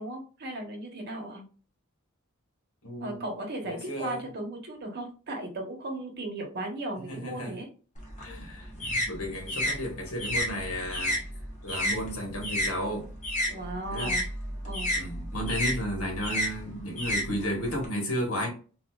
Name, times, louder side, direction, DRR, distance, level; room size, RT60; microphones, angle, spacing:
voice 1, 0.0-1.4 3.0-7.7 13.5-14.2 14.6-14.9, right 1 dB, 50° right, 1.0 m, -36 dB
voice 2, 2.8-3.3 3.6-4.3 6.9-7.6 8.2-11.2 11.6-13.1 13.9-14.1 14.9-18.5, equal, 80° left, 1.4 m, -33 dB
sound 1, 8.0-12.7 13.0-17.9, equal, 35° left, 1.0 m, -31 dB
4.1 x 2.5 x 2.3 m
head